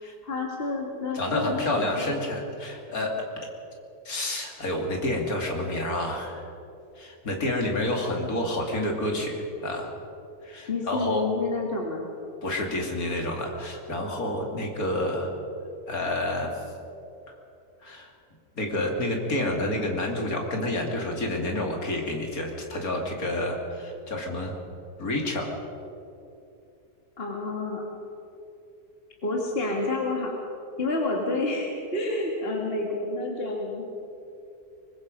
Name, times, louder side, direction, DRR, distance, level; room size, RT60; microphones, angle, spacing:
voice 1, 0.2-2.1 10.7-12.1 27.2-27.8 29.2-30.3 30.8-33.9, left 2 dB, 40° left, -1 dB, 2.2 m, -29 dB
voice 2, 1.1-3.3 4.0-6.4 7.0-9.9 10.4-11.3 12.4-15.3 15.9-16.5 17.8-18.1 18.6-24.5 25.0-25.5, left 1 dB, 70° left, 1 dB, 3.2 m, -29 dB
24.0 x 20.5 x 5.3 m, 2.7 s
omnidirectional pair, 1.6 m